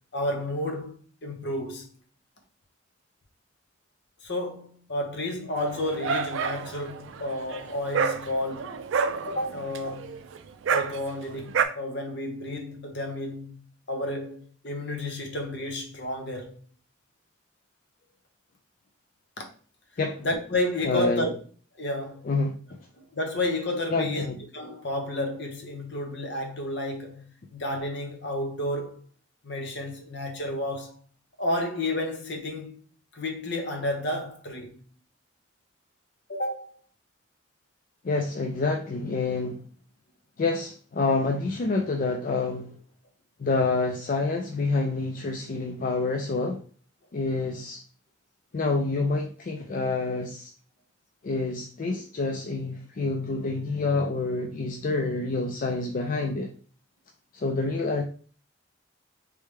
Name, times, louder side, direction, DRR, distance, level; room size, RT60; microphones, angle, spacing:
voice 1, 0.1-1.8 4.2-8.8 9.3-10.2 10.7-13.6 13.9-16.5 19.4-19.5 20.2-21.3 21.8-22.3 23.0-29.1 29.4-31.0 31.4-32.8 33.1-34.8 36.3-36.8, left 1 dB, 60° left, 0.9 m, -31 dB
Dog, 5.6-11.6, right 6 dB, 75° right, 0.4 m, -29 dB
voice 2, 20.8-21.3 22.2-22.6 23.9-24.4 38.0-39.6 40.4-42.7 43.4-46.6 47.1-47.8 48.5-50.5 51.2-56.5 57.3-58.0, left 3 dB, 45° left, 0.4 m, -27 dB
3.4 x 3.2 x 3.3 m
head